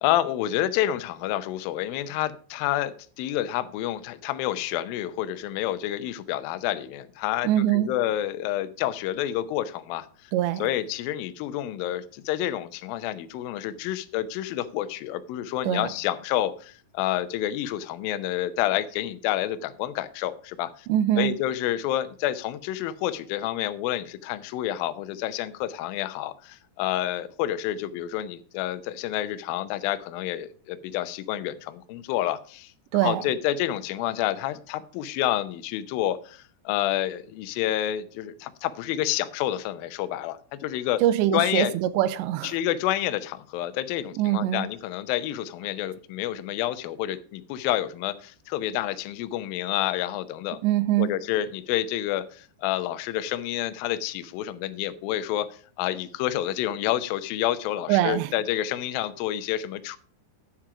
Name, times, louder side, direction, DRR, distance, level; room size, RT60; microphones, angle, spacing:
voice 1, 0.0-10.3 10.6-20.9 21.2-32.7 33.0-41.0 41.3-41.8 42.4-50.6 51.0-60.0, left 13 dB, 90° left, 2.0 m, -29 dB
voice 2, 7.4-7.9 10.3-10.7 15.6-15.9 20.9-21.3 32.9-33.2 41.0-42.6 44.2-44.6 50.6-51.1 57.9-58.3, right 13 dB, 85° right, 2.9 m, -23 dB
10.0 x 7.5 x 4.9 m
omnidirectional pair, 5.1 m